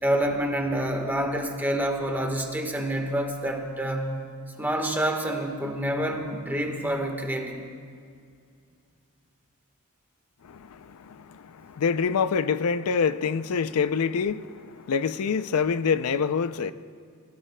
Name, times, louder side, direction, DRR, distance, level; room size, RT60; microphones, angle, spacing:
voice 1, 0.0-4.2 4.6-7.6, right 1 dB, 10° right, 1.3 m, -27 dB
voice 2, 10.4-16.7, left 6 dB, 90° left, 0.4 m, -26 dB
27.0 x 18.0 x 2.2 m
head